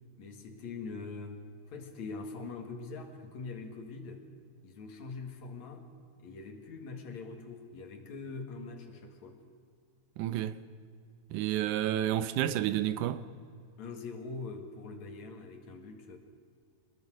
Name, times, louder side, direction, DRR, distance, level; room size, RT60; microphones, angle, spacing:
voice 1, 0.2-4.3 4.6-5.9 6.2-9.4 13.8-16.2, left 4 dB, 70° left, 3.2 m, -43 dB
voice 2, 10.2-10.6 11.3-13.3, right 12 dB, 85° right, 2.3 m, -30 dB
26.5 x 20.5 x 6.4 m
omnidirectional pair, 3.4 m